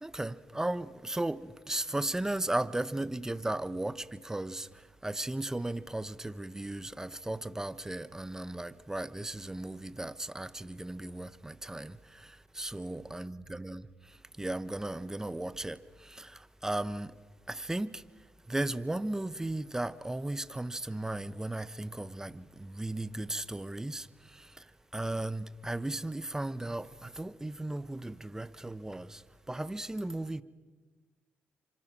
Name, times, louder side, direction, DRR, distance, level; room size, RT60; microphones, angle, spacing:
voice 1, 0.0-4.7 5.0-13.8 14.4-17.1 17.5-18.0 18.5-24.6 24.9-29.2 29.5-30.4, right 1 dB, 10° right, 1.1 m, -36 dB
29.5 x 26.0 x 6.2 m
cardioid pair, 80°, 4 cm